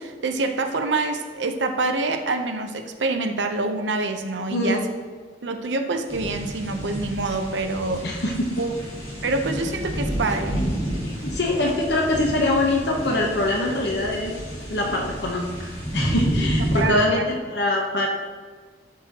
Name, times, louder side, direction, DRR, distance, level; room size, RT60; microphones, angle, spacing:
voice 1, 0.0-4.9 5.4-8.1 8.6-8.7 9.2-10.6 16.8-17.2, right 3 dB, 85° right, 5 dB, 0.8 m, -26 dB
voice 2, 4.5-4.8 8.0-8.7 11.0-14.3 14.7-18.1, left 1 dB, 70° left, 0 dB, 1.0 m, -24 dB
sound 1, 6.1-16.8, equal, 45° left, 2.7 m, -30 dB
13.0 x 6.2 x 3.0 m, 1.5 s
head